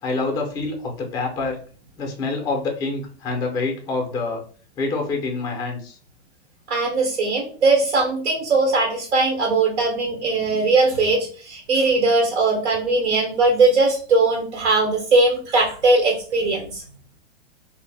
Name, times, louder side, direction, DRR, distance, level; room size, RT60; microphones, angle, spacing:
voice 1, 0.0-1.6 2.0-4.4 4.8-6.0, left 3 dB, 15° left, 2 dB, 0.4 m, -26 dB
voice 2, 6.7-16.8, right 3 dB, 90° right, 0 dB, 0.9 m, -20 dB
2.0 x 2.0 x 3.2 m, 0.42 s
hypercardioid pair, 135°, 33 cm